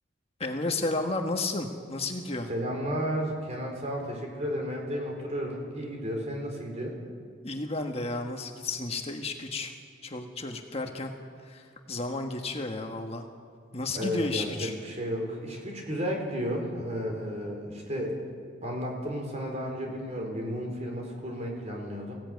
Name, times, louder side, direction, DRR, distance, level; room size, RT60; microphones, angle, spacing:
voice 1, 0.4-2.5 7.4-9.7 10.0-11.1 11.4-13.2 13.7-14.7, left 2 dB, 30° left, 4 dB, 1.4 m, -32 dB
voice 2, 2.5-7.0 13.9-18.2 18.6-22.1, equal, 35° right, 1 dB, 4.6 m, -33 dB
23.5 x 16.5 x 9.4 m, 2.2 s
head